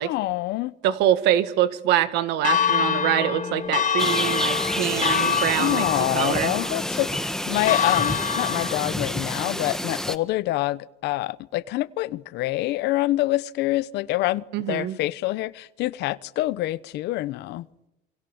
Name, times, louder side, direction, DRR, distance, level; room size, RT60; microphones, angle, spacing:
voice 1, 0.0-0.7 5.6-17.6, left 17 dB, 85° left, 1.0 m, -26 dB
voice 2, 0.8-5.8 6.1-6.5 14.5-15.0, right 12 dB, 90° right, 1.7 m, -24 dB
Church bell, 2.4-8.9, left 7 dB, 50° left, 3.3 m, -26 dB
sound 1, 4.0-10.2, left 1 dB, 5° left, 1.6 m, -29 dB
29.5 x 23.5 x 7.2 m
cardioid pair, 110°, 17 cm